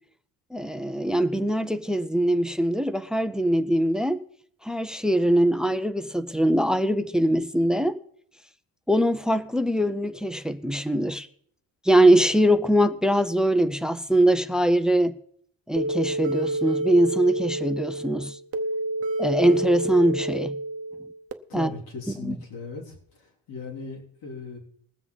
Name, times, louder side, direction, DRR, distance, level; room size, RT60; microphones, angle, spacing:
voice 1, 0.5-4.2 4.6-8.0 8.9-11.3 11.9-15.1 15.7-18.4 19.2-20.6 21.5-21.7 22.2-22.4, right 1 dB, ahead, 0.4 m, -22 dB
sound 1, 15.8-21.3, right 2 dB, 40° right, 0.9 m, -29 dB
voice 2, 21.5-24.6, left 3 dB, 80° left, 3.8 m, -38 dB
21.0 x 7.7 x 4.0 m
cardioid pair, 150°, 35 cm